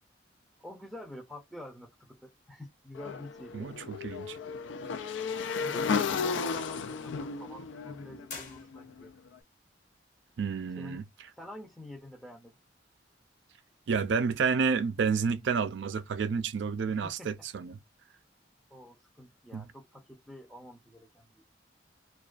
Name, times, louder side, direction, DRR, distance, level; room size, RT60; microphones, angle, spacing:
voice 1, 0.6-3.7 5.6-9.1 10.8-11.0 11.4-12.6 16.9-17.3 18.7-21.4, left 1 dB, ahead, 0.5 m, -47 dB
Motorcycle / Engine, 3.0-9.1, left 5 dB, 90° left, 0.3 m, -34 dB
voice 2, 3.5-4.4 10.4-11.0 13.9-17.8 19.5-19.7, right 5 dB, 80° right, 0.4 m, -30 dB
sound 1, 8.3-9.3, left 5 dB, 45° left, 0.7 m, -45 dB
2.3 x 2.2 x 2.4 m
head